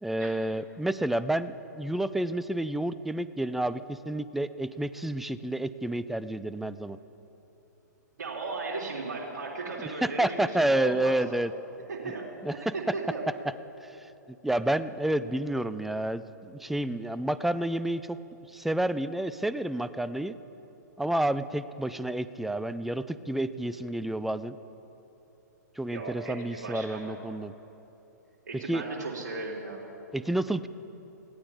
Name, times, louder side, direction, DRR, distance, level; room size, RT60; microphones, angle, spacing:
voice 1, 0.0-7.0 9.8-11.5 12.4-12.7 13.8-14.1 14.4-18.2 18.5-20.3 21.0-24.6 25.8-27.5 28.7-28.8 30.1-30.7, right 1 dB, ahead, 14 dB, 0.4 m, -30 dB
voice 2, 8.2-11.2 11.9-13.2 25.8-27.4 28.5-29.9, right 3 dB, 65° right, -2 dB, 3.7 m, -36 dB
21.0 x 16.0 x 3.7 m, 2.9 s
figure-of-eight pair, 120°, 10 cm